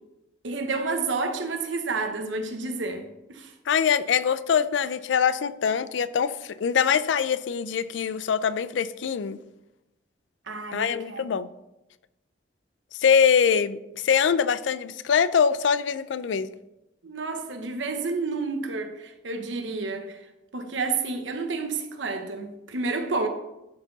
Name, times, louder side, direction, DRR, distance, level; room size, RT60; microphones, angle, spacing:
voice 1, 0.4-3.5 10.5-11.2 17.0-20.3 20.5-23.3, right 3 dB, 85° right, 1.0 m, -30 dB
voice 2, 3.7-9.4 10.7-11.5 13.0-16.5, left 7 dB, 80° left, 0.4 m, -23 dB
11.5 x 4.5 x 4.0 m
head